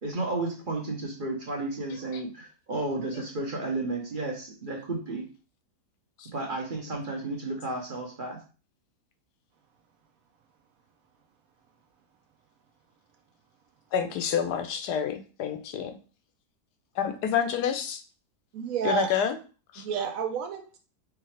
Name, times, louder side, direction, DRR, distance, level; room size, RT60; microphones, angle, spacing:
voice 1, 0.0-5.3 6.3-8.4, right 2 dB, 40° right, 0 dB, 0.8 m, -32 dB
voice 2, 13.9-16.0 17.0-18.0 18.8-19.4 19.7-19.8, left 8 dB, 80° left, 8 dB, 1.2 m, -28 dB
voice 3, 18.5-19.2 19.8-20.8, right 7 dB, 70° right, 4 dB, 1.0 m, -30 dB
4.7 x 3.2 x 3.2 m, 0.36 s
omnidirectional pair, 1.7 m